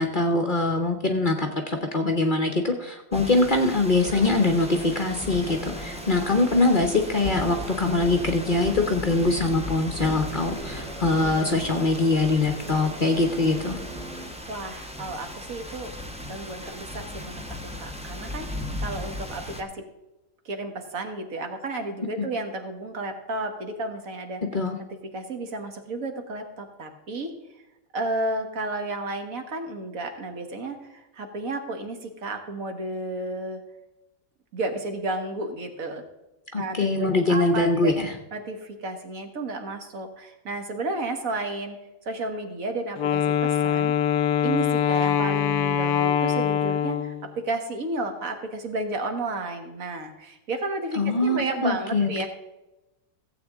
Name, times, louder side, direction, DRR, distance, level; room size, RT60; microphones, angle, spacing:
voice 1, 0.0-13.8 22.2-22.3 24.5-24.8 36.5-38.1 50.9-52.3, left 2 dB, 40° left, 5 dB, 0.9 m, -23 dB
sound 1, 3.1-19.6, left 1 dB, 5° right, 0.6 m, -37 dB
sound 2, 4.0-14.3, right 2 dB, 90° right, 3.4 m, -40 dB
voice 2, 14.5-15.9 16.3-17.4 17.8-19.8 20.4-24.4 25.1-27.3 27.9-33.6 34.5-36.0 36.5-37.9 38.3-41.8 42.0-43.9 44.4-52.3, right 2 dB, 60° right, 5 dB, 1.7 m, -32 dB
Wind instrument woodwind instrument, 43.0-47.3, left 9 dB, 75° left, 1.1 m, -23 dB
15.5 x 8.0 x 3.6 m, 0.99 s
omnidirectional pair, 1.7 m